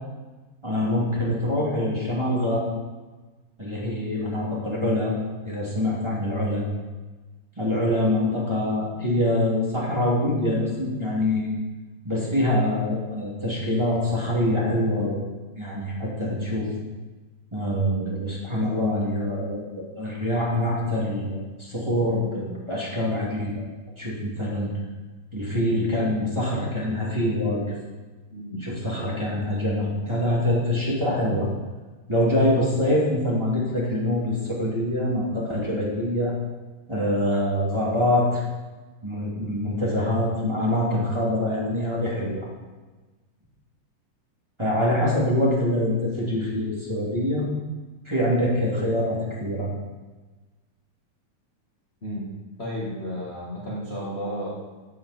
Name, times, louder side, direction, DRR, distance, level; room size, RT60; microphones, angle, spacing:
voice 1, 0.6-2.7 3.6-5.1 5.4-6.7 7.6-11.5 12.0-15.2 15.6-16.7 17.5-23.5 24.0-24.7 25.3-27.8 28.5-31.5 32.1-36.3 36.9-38.4 39.0-42.5 44.6-47.4 48.0-49.7, left 1 dB, 10° right, -6 dB, 2.0 m, -25 dB
voice 2, 28.3-28.8 52.0-52.3 52.6-54.5, equal, 45° left, -6 dB, 0.8 m, -33 dB
12.5 x 8.0 x 4.3 m, 1.2 s
omnidirectional pair, 3.9 m